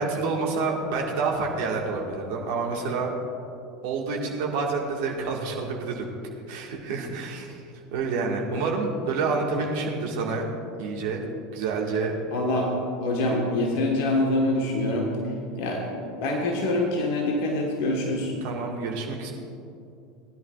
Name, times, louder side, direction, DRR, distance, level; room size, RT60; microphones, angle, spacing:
voice 1, 0.0-3.1 3.8-6.1 6.5-7.6 7.9-10.5 10.8-11.2 11.5-12.2 18.4-19.3, right 4 dB, 55° right, 0 dB, 1.9 m, -28 dB
voice 2, 12.3-12.7 13.0-15.1 15.6-18.3, left 1 dB, 55° left, 0 dB, 1.6 m, -25 dB
19.5 x 11.0 x 2.6 m, 2.6 s
figure-of-eight pair, 75°, 0 cm